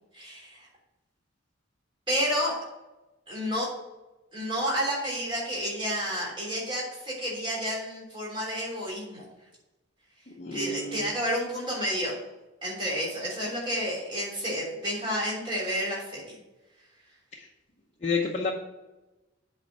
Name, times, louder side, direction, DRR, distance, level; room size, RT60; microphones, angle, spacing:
voice 1, 0.1-0.7 2.1-2.6 3.3-3.7 4.3-9.3 10.5-12.2 12.6-16.4, equal, 25° right, -5 dB, 3.4 m, -30 dB
voice 2, 10.4-11.1 17.4-17.5 18.0-18.5, left 4 dB, 35° left, -3 dB, 0.8 m, -30 dB
8.1 x 4.4 x 6.5 m, 1.0 s
head